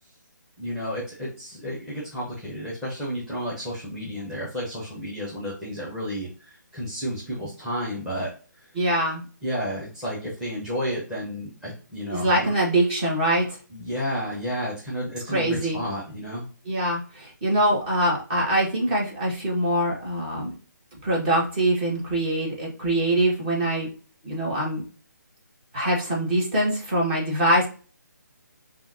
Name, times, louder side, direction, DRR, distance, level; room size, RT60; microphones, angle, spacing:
voice 1, 0.6-8.3 8.6-8.7 9.4-12.5 13.7-16.5, equal, 5° right, -5 dB, 1.1 m, -31 dB
voice 2, 8.7-9.2 12.1-13.6 15.3-15.8 16.6-20.5 21.0-23.9 24.2-24.8 25.7-27.7, right 1 dB, 25° right, -3 dB, 1.6 m, -23 dB
5.4 x 2.6 x 2.7 m, 0.38 s
figure-of-eight pair, 145°, 10 cm